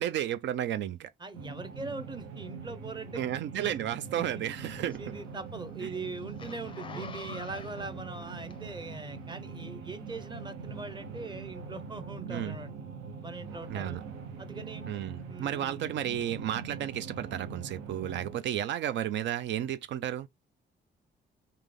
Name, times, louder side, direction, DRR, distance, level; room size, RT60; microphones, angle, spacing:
voice 1, 0.0-1.1 3.1-5.1 12.3-12.6 13.7-14.0 14.9-20.3, right 11 dB, 65° right, 0.4 m, -33 dB
voice 2, 1.2-3.2 3.6-3.7 4.1-4.4 5.0-12.7 13.2-14.0 14.4-14.9 15.3-15.9, right 3 dB, 25° right, 0.8 m, -41 dB
sound 1, 1.3-18.4, right 5 dB, 90° right, 0.9 m, -43 dB
Zipper (clothing), 4.0-9.0 9.5-9.7, left 5 dB, 25° left, 0.5 m, -47 dB
3.3 x 2.8 x 3.8 m
cardioid pair, 90°, 20 cm